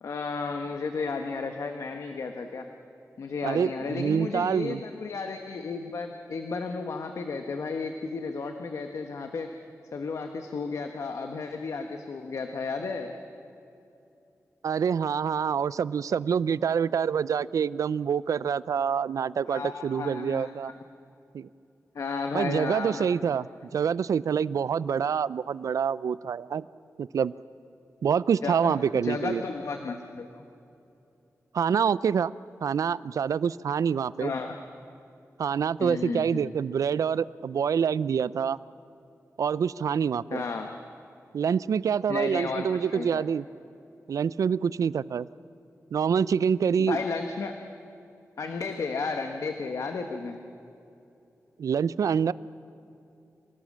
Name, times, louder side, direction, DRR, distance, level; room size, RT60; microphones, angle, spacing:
voice 1, 0.0-2.6 3.2-9.5 9.9-13.1 19.4-20.7 21.9-23.1 28.4-30.4 34.2-34.6 35.8-36.5 40.3-40.8 42.1-43.2 46.8-47.5 48.4-50.4, left 4 dB, 70° left, 5 dB, 1.3 m, -33 dB
voice 2, 3.4-4.8 14.6-20.7 21.3-21.5 22.3-23.5 23.7-26.6 27.0-27.3 28.0-29.4 31.5-32.3 32.6-34.3 35.4-38.6 39.4-40.4 41.3-43.5 44.1-45.3 45.9-47.0 51.6-52.3, right 7 dB, 85° right, 19 dB, 0.4 m, -26 dB
27.0 x 18.0 x 7.4 m, 2.7 s
wide cardioid pair, 160°, 6 cm